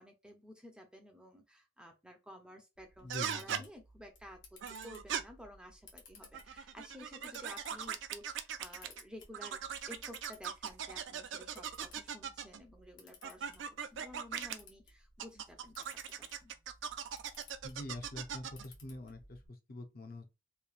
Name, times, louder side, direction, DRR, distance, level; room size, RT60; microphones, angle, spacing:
voice 1, 0.0-9.6 9.9-13.6 13.9-15.9 16.2-16.5, left 1 dB, 5° right, 0.5 m, -53 dB
Camera, 2.8-19.5, left 2 dB, 65° left, 1.0 m, -59 dB
voice 2, 3.0-3.6 17.6-20.3, left 1 dB, 50° left, 0.6 m, -45 dB
sound 1, 3.1-3.6 4.6-5.2 6.2-9.0 9.3-12.6 13.2-14.6 15.2-18.7, right 8 dB, 65° right, 0.3 m, -40 dB
3.1 x 2.2 x 2.4 m
head